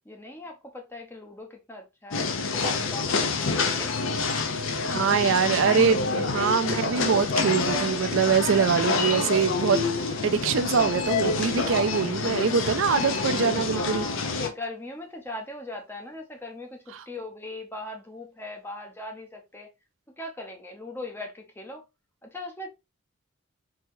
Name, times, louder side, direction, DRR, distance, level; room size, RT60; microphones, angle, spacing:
voice 1, 0.0-2.3 2.6-3.9 4.6-5.4 5.7-6.6 13.7-16.8 17.1-19.7 20.2-21.8 22.2-22.7, left 2 dB, 10° left, 0.6 m, -39 dB
sound 1, 2.1-14.5, left 4 dB, 70° left, 0.6 m, -27 dB
voice 2, 4.9-14.1 16.9-17.1, right 6 dB, 70° right, 0.4 m, -24 dB
4.0 x 2.8 x 2.6 m
head